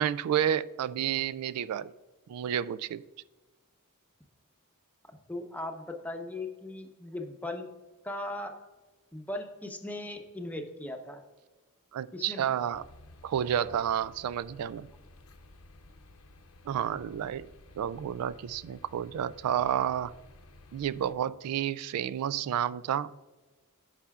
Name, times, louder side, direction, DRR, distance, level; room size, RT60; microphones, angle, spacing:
voice 1, 0.0-1.9 2.3-3.0 11.9-12.8 13.2-14.9 16.7-17.5 17.8-20.1 20.7-23.1, right 9 dB, 90° right, 0.3 m, -30 dB
voice 2, 5.3-7.7 8.0-8.5 9.1-11.2 12.1-12.4, left 1 dB, 5° left, 0.8 m, -38 dB
sound 1, 12.7-21.1, left 1 dB, 70° left, 0.8 m, -54 dB
14.5 x 5.6 x 2.4 m
head